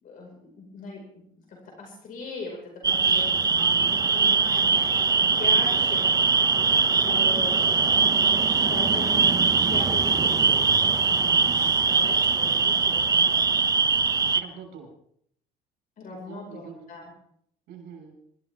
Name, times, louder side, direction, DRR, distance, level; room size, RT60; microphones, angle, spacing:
voice 1, 0.0-2.6 2.9-6.1 7.0-8.3 8.7-13.5 16.0-17.1, left 3 dB, 55° left, 0 dB, 5.1 m, -40 dB
sound 1, 2.8-14.4, right 5 dB, 20° right, 0.6 m, -21 dB
voice 2, 3.6-4.1 14.3-14.9 16.3-16.7 17.7-18.2, right 7 dB, 80° right, 2 dB, 5.8 m, -43 dB
23.5 x 13.5 x 3.5 m, 0.67 s
cardioid pair, 110°, 17 cm